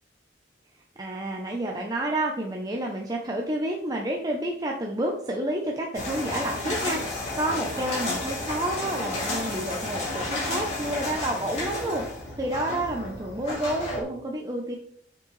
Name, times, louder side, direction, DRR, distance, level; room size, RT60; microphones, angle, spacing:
voice 1, 1.0-14.8, right 1 dB, 20° right, 0 dB, 0.7 m, -30 dB
sound 1, 5.9-14.0, left 2 dB, 40° left, 3.0 m, -32 dB
7.5 x 6.0 x 3.2 m, 0.66 s
head